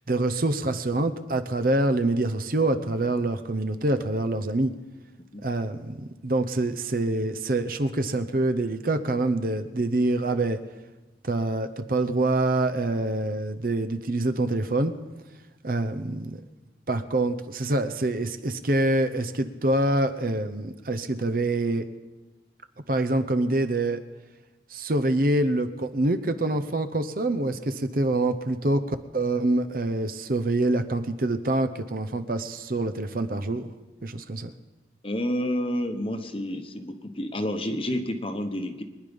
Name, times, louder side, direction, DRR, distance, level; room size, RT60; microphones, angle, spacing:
voice 1, 0.1-4.7 5.4-5.9 6.2-10.6 11.2-14.9 15.6-16.4 16.9-21.9 22.9-24.0 24.7-33.7 34.0-34.5, right 2 dB, 50° right, 9 dB, 0.8 m, -25 dB
voice 2, 35.0-38.8, left 1 dB, 30° left, 7 dB, 1.1 m, -29 dB
23.5 x 10.5 x 5.3 m, 1.2 s
head